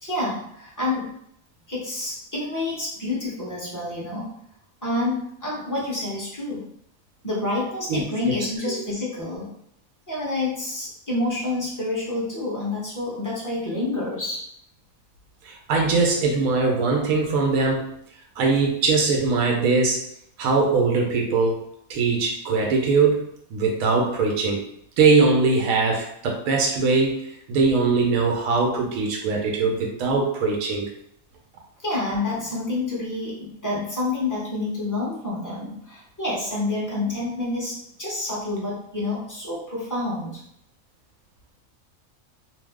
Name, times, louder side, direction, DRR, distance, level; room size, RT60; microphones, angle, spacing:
voice 1, 0.0-1.1 1.7-4.3 4.8-6.7 7.2-9.5 10.1-14.4 31.8-40.4, left 2 dB, 15° left, -6 dB, 0.8 m, -28 dB
voice 2, 7.9-8.3 8.7-8.8 15.4-17.9 18.4-20.0 20.4-21.6 21.9-24.6 25.0-30.9, right 4 dB, 90° right, 0 dB, 1.0 m, -21 dB
2.7 x 2.0 x 3.4 m, 0.71 s
omnidirectional pair, 1.4 m